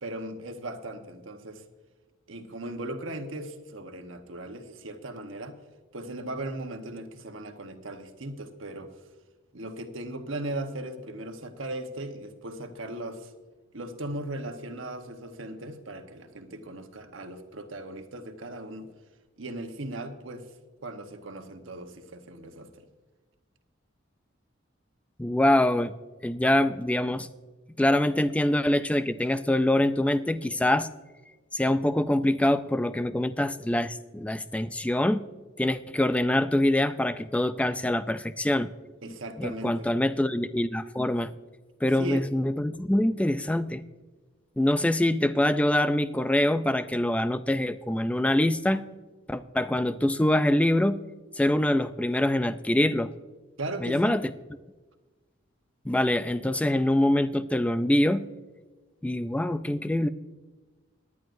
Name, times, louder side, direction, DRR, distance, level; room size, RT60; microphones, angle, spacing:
voice 1, 0.0-1.6 2.3-5.5 5.9-8.9 9.5-13.3 13.7-18.9 19.4-20.5 20.8-22.9 39.0-39.9 42.0-42.2 53.6-54.2, right 1 dB, 75° right, 6 dB, 1.1 m, -38 dB
voice 2, 25.2-25.9 26.2-27.3 27.8-30.9 31.5-35.2 35.6-38.7 39.4-41.3 41.8-43.8 44.6-48.8 49.3-51.0 51.3-53.1 53.8-54.2 55.9-58.3 59.0-60.1, left 1 dB, 5° left, 12 dB, 0.3 m, -24 dB
18.0 x 11.0 x 2.6 m, 1.3 s
head